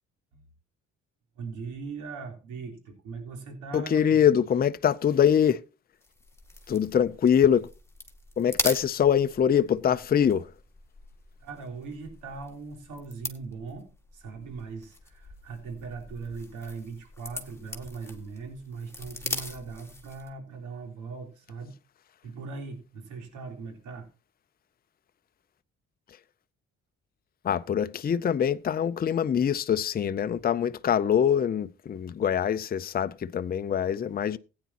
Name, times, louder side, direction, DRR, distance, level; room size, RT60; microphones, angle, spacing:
voice 1, 1.4-4.2 11.4-21.8 22.2-24.1, right 4 dB, 85° right, 3.6 m, -40 dB
voice 2, 3.7-5.6 6.7-7.7 8.4-10.5 27.4-34.4, left 8 dB, 30° left, 0.5 m, -24 dB
sound 1, 6.0-20.4, left 2 dB, 10° left, 1.9 m, -40 dB
16.5 x 9.5 x 2.9 m
cardioid pair, 90°, 30 cm